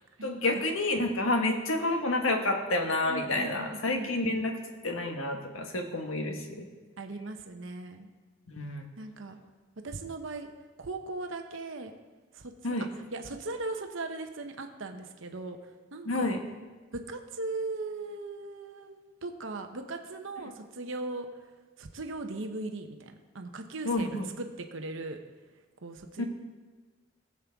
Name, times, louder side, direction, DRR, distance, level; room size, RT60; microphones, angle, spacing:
voice 1, 0.2-4.6 4.8-6.7 8.5-8.8 12.6-12.9 16.0-16.4 23.8-24.3 26.2-26.3, left 2 dB, 85° left, 4 dB, 1.4 m, -29 dB
voice 2, 3.1-4.5 7.0-8.1 9.0-9.4 9.8-10.5 10.8-11.9 12.3-12.8 13.1-15.6 15.9-16.3 16.9-21.3 21.8-24.1 24.4-25.2 25.8-26.2, right 2 dB, 70° right, 5 dB, 0.9 m, -38 dB
19.5 x 7.4 x 3.6 m, 1.4 s
head